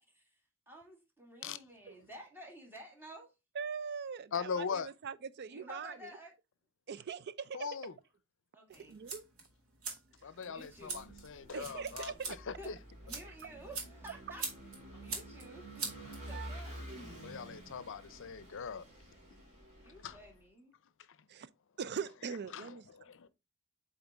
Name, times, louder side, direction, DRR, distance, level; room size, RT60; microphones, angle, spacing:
voice 1, 0.7-3.3 5.5-6.3 8.5-9.0 10.4-11.1 12.3-12.8 13.0-14.5 14.9-16.9 19.8-20.7 23.1-23.3, equal, 10° right, 1.9 m, -52 dB
voice 2, 3.5-6.1 6.9-7.7 8.8-9.2 11.5-12.4 16.3-16.5 21.3-21.5 21.8-22.8, right 6 dB, 50° right, 0.4 m, -41 dB
voice 3, 4.3-4.9 7.5-7.9 10.2-12.1 12.5-12.8 14.9-15.0 17.2-18.9 20.0-20.2 22.5-23.3, left 6 dB, 65° left, 0.6 m, -40 dB
sound 1, 8.7-16.7, right 4 dB, 90° right, 2.2 m, -45 dB
Vehicle / Engine, 10.6-20.4, right 1 dB, 35° right, 2.8 m, -50 dB
8.1 x 3.8 x 3.4 m
head